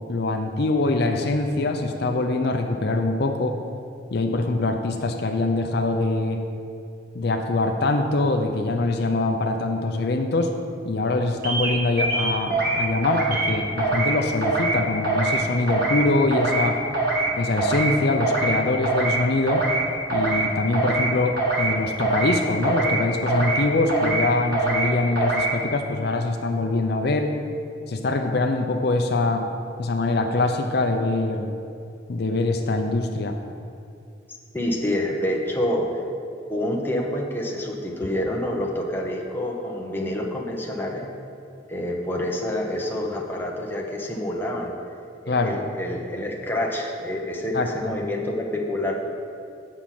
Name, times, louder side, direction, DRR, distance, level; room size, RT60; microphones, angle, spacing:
voice 1, 0.1-3.5 4.1-6.4 7.1-10.5 10.8-16.8 17.4-19.6 20.1-27.3 27.9-29.5 29.8-31.5 32.1-33.4 45.3-45.6 47.5-47.7, left 2 dB, 60° left, 4 dB, 0.6 m, -23 dB
sound 1, 11.4-11.7 12.0-12.8 13.0-13.5 13.8-14.1 14.4-14.8 15.0-15.4 15.7-16.0 16.3-16.7 16.9-17.3 17.6-17.9 18.2-18.6 18.8-19.2 19.5-19.8 20.1-20.5 20.7-21.1 21.4-21.7 22.0-22.3 22.6-23.0 23.3-23.6 23.9-24.2 24.5-24.9 25.2-25.5, right 2 dB, 55° right, 1.8 m, -23 dB
voice 2, 34.5-36.0 36.5-41.1 41.7-44.7 45.2-48.9, left 1 dB, 10° left, -1 dB, 0.9 m, -27 dB
8.7 x 6.2 x 5.8 m, 2.5 s
head